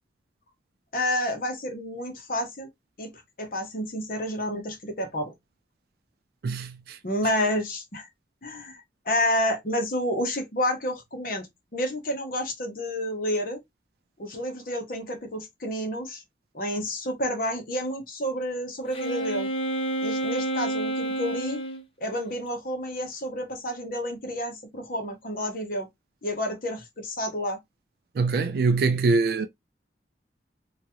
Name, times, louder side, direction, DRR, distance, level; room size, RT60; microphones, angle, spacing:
voice 1, 0.9-2.7 3.0-3.1 3.4-5.3 7.0-8.1 8.4-11.5 11.7-13.6 14.2-16.2 16.5-19.5 20.0-21.6 22.0-25.9 26.2-27.6, equal, 50° left, 1.0 m, -30 dB
voice 2, 6.4-7.0 28.2-29.5, right 4 dB, 60° right, 0.3 m, -23 dB
Wind instrument woodwind instrument, 18.9-21.8, right 1 dB, 30° left, 0.5 m, -29 dB
2.9 x 2.4 x 2.7 m
head